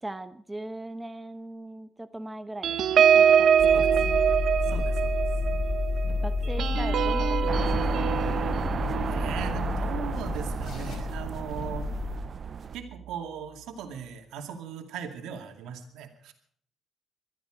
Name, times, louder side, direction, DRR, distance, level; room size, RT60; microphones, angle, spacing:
voice 1, 0.0-4.1 6.2-8.1, right 1 dB, 10° right, 10 dB, 1.0 m, -39 dB
sound 1, 2.6-11.6 12.0-12.2 12.5-12.8, right 8 dB, 70° right, 0.9 m, -25 dB
sound 2, 3.6-12.2, left 3 dB, 65° left, 5.2 m, -30 dB
voice 2, 4.7-5.2 9.1-11.9 12.7-16.3, right 7 dB, 85° right, 5 dB, 2.3 m, -38 dB
sound 3, 7.5-12.8, right 6 dB, 45° right, 0.6 m, -34 dB
21.5 x 13.0 x 5.0 m, 0.62 s
cardioid pair, 90°, 0 cm